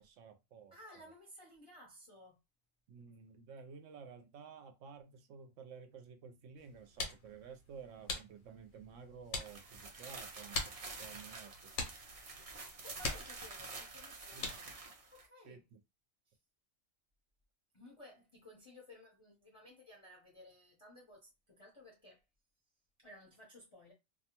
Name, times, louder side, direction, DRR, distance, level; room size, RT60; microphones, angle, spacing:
voice 1, 0.0-0.7 2.9-11.5 14.3-14.4 15.4-15.8, right 6 dB, 75° right, 0.9 m, -53 dB
voice 2, 0.7-2.4 12.8-14.7 15.1-15.6 17.7-22.2 23.0-23.9, left 1 dB, 30° left, 0.6 m, -57 dB
sound 1, 6.6-14.9, left 3 dB, 85° left, 1.2 m, -45 dB
sound 2, 9.4-15.2, right 3 dB, 45° right, 0.4 m, -48 dB
2.6 x 2.1 x 2.9 m
omnidirectional pair, 1.4 m